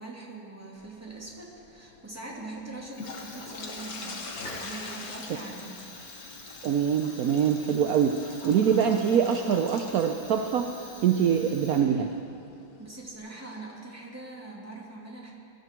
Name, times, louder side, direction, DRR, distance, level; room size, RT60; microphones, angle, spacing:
voice 1, 0.0-4.2 4.6-5.8 12.8-15.3, right 2 dB, 10° right, -4 dB, 2.4 m, -42 dB
sound 1, 0.8-13.1, left 3 dB, 50° left, 1.6 m, -45 dB
Fire, 2.9-12.2, left 2 dB, 65° left, 4.0 m, -46 dB
voice 2, 6.6-10.7 11.0-12.1, right 8 dB, 70° right, 5 dB, 0.8 m, -24 dB
22.0 x 12.0 x 4.5 m, 2.7 s
omnidirectional pair, 2.2 m